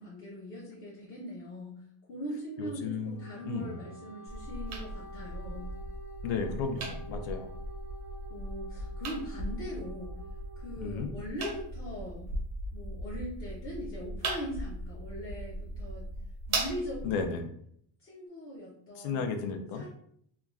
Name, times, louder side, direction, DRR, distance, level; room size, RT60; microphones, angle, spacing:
voice 1, 0.0-1.8 2.1-5.7 8.3-10.2 10.6-12.3 12.7-16.0 16.5-17.2 18.0-19.3 19.7-19.9, equal, 30° left, -5 dB, 0.4 m, -41 dB
voice 2, 2.6-3.8 6.2-7.5 10.8-11.1 17.0-17.5 19.0-19.9, left 5 dB, 75° left, 6 dB, 0.6 m, -34 dB
Wind instrument woodwind instrument, 3.0-11.1, right 1 dB, 10° left, 0.9 m, -49 dB
sound 1, 4.3-17.3, right 2 dB, 35° right, 0.4 m, -38 dB
3.0 x 2.2 x 2.4 m, 0.67 s
cardioid pair, 170°, 49 cm